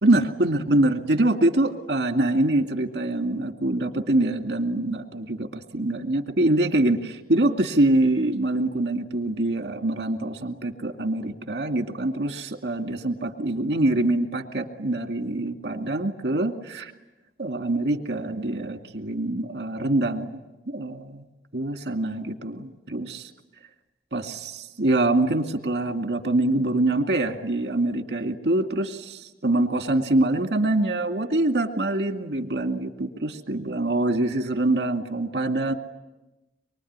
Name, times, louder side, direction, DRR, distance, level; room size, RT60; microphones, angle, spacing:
voice 1, 0.0-16.9 17.4-20.4 20.7-21.2 21.5-23.3 24.1-35.7, right 2 dB, 65° right, 6 dB, 2.3 m, -24 dB
24.0 x 24.0 x 9.6 m, 1.0 s
head